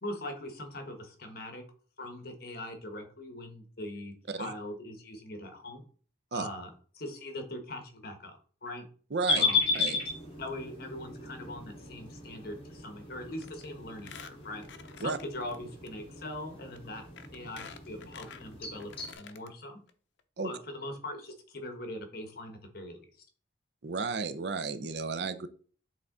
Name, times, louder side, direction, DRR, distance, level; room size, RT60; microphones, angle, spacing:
voice 1, 0.0-1.6 2.0-5.8 6.3-8.8 9.4-9.7 10.4-14.6 15.0-17.1 17.3-19.8 20.4-23.0, left 1 dB, 50° left, 5 dB, 1.2 m, -41 dB
voice 2, 9.1-9.4 9.7-10.0 15.0-15.2 20.4-20.5 23.8-25.5, right 4 dB, 60° right, 12 dB, 0.5 m, -33 dB
sound 1, 9.3-19.1, left 3 dB, 30° left, 1.9 m, -35 dB
Squeak, 13.4-13.7 14.0-15.6 15.9-16.0 16.7-16.8 17.2-19.5 19.9-20.0 20.2-20.3, left 7 dB, 70° left, 0.6 m, -49 dB
8.3 x 3.7 x 3.8 m, 0.43 s
head